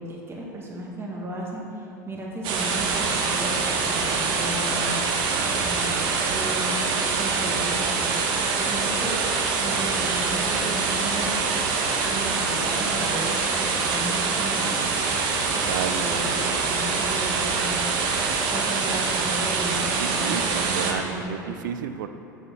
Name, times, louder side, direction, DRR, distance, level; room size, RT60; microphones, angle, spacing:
voice 1, 0.0-9.1 9.6-11.3 12.0-14.8 15.9-18.2 18.5-21.3, right 1 dB, 25° right, -3 dB, 1.8 m, -35 dB
sound 1, 2.4-20.9, right 4 dB, 55° right, 1.3 m, -25 dB
voice 2, 15.5-16.1 20.0-22.1, right 8 dB, 75° right, 9 dB, 0.5 m, -32 dB
7.1 x 6.8 x 5.9 m, 2.8 s
hypercardioid pair, 85°, 10 cm